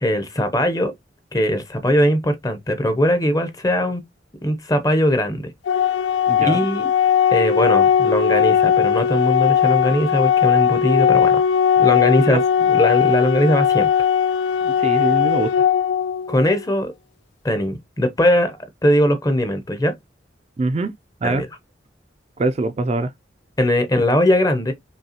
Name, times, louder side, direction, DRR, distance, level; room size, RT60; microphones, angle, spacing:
voice 1, 0.0-0.9 1.3-4.0 4.4-5.5 6.3-6.9 7.3-11.4 11.8-12.4 12.7-13.9 16.3-16.9 17.4-18.6 18.8-19.9 21.2-21.5 23.6-24.7, left 1 dB, 20° left, 0.7 m, -20 dB
Organ, 5.7-16.6, left 8 dB, 80° left, 0.4 m, -18 dB
voice 2, 6.3-6.7 12.3-12.4 14.6-15.7 20.6-20.9 21.2-21.4 22.4-23.1, right 2 dB, 35° right, 0.3 m, -23 dB
5.3 x 2.3 x 2.8 m
head